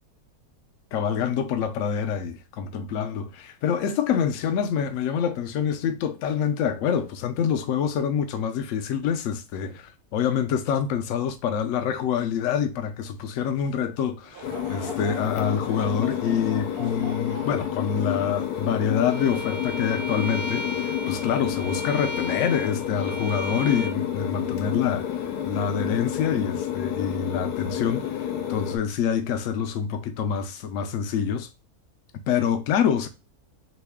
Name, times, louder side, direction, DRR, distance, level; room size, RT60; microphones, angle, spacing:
voice 1, 0.9-31.5 32.3-33.1, left 7 dB, 70° left, 0.8 m, -26 dB
Laughter / Crowd, 14.2-19.7 20.3-20.4 21.2-21.4, right 5 dB, 80° right, 1.1 m, -44 dB
sound 1, 14.4-28.8, left 10 dB, 85° left, 1.2 m, -30 dB
Bowed string instrument, 19.1-24.0, equal, 50° right, 1.1 m, -36 dB
3.1 x 2.7 x 3.4 m
omnidirectional pair, 1.6 m